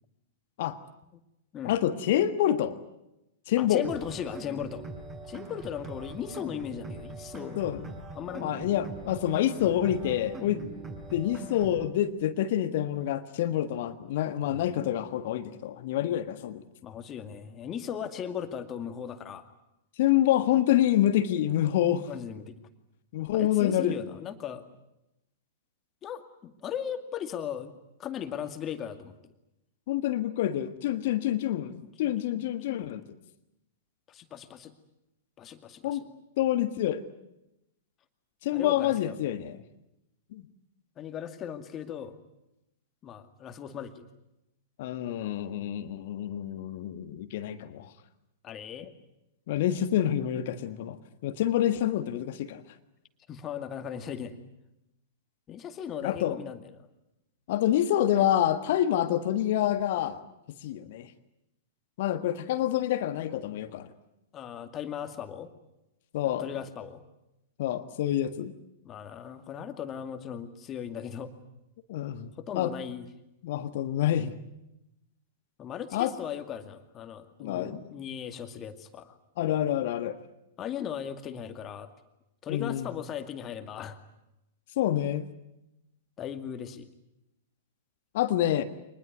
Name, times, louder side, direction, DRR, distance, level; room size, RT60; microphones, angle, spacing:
voice 1, 1.6-2.8 3.5-3.9 7.6-7.9 8.4-10.6 11.1-16.6 20.0-22.1 23.1-24.0 29.9-33.0 35.8-36.0 36.4-37.0 38.4-39.5 40.3-40.4 44.8-47.9 49.5-52.6 56.0-56.4 57.5-60.2 60.6-61.1 62.0-63.9 66.1-66.5 67.6-68.5 71.9-72.7 73.4-74.3 75.9-76.1 77.4-77.8 79.4-80.2 82.5-82.9 84.8-85.2 88.1-88.6, left 12 dB, 50° left, 10 dB, 1.5 m, -27 dB
voice 2, 3.6-4.9 5.2-7.6 8.1-8.5 14.5-14.7 16.8-19.5 22.1-22.5 23.3-24.6 26.0-27.7 28.0-29.3 31.8-31.9 32.2-33.0 34.1-34.7 35.4-36.0 38.5-39.2 41.0-42.2 43.0-44.1 48.4-48.9 53.3-54.3 55.5-56.7 64.3-65.5 66.2-67.0 68.8-71.3 72.4-73.1 75.6-79.1 80.6-81.9 82.4-84.0 86.2-86.9, left 8 dB, 25° left, 8 dB, 2.2 m, -37 dB
sound 1, 3.8-11.8, right 3 dB, 25° right, 6.9 m, -42 dB
25.0 x 20.5 x 9.5 m, 0.90 s
figure-of-eight pair, 100°, 0 cm